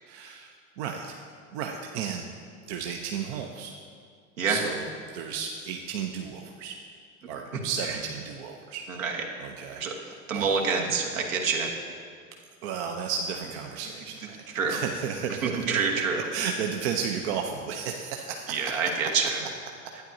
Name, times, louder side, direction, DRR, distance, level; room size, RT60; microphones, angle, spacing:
voice 1, 0.1-1.2 1.5-2.3 2.7-3.7 4.5-6.8 7.3-8.8 9.4-10.6 12.6-15.8 16.3-18.8, right 6 dB, 55° right, 3 dB, 0.7 m, -33 dB
voice 2, 8.9-9.2 9.7-9.9 10.3-11.7 14.5-14.8 15.4-16.2 18.5-19.4, right 5 dB, 70° right, 1 dB, 1.3 m, -27 dB
11.5 x 9.0 x 2.7 m, 2.2 s
figure-of-eight pair, 80°, 41 cm